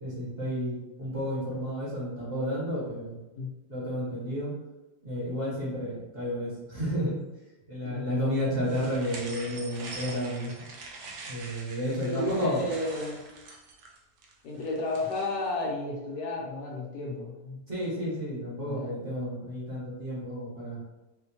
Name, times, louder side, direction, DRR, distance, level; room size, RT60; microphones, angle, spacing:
voice 1, 0.0-3.2 3.7-4.5 5.0-7.2 7.7-10.5 11.3-12.6 17.7-20.8, equal, 35° right, -6 dB, 1.2 m, -31 dB
voice 2, 7.8-8.5 11.8-13.2 14.4-17.7 18.7-18.9, left 2 dB, 75° left, -3 dB, 1.1 m, -33 dB
sound 1, 8.6-15.5, right 3 dB, 90° right, 1.3 m, -44 dB
4.3 x 2.1 x 2.8 m, 1.0 s
omnidirectional pair, 1.9 m